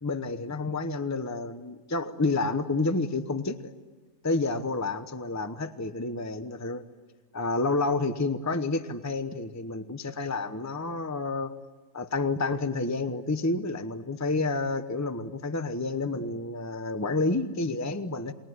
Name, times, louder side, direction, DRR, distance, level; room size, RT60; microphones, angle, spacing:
voice 1, 0.0-3.7 4.2-6.8 7.3-11.5 11.9-18.3, left 3 dB, 15° left, 10 dB, 0.9 m, -29 dB
29.0 x 21.0 x 9.5 m, 1.3 s
omnidirectional pair, 1.5 m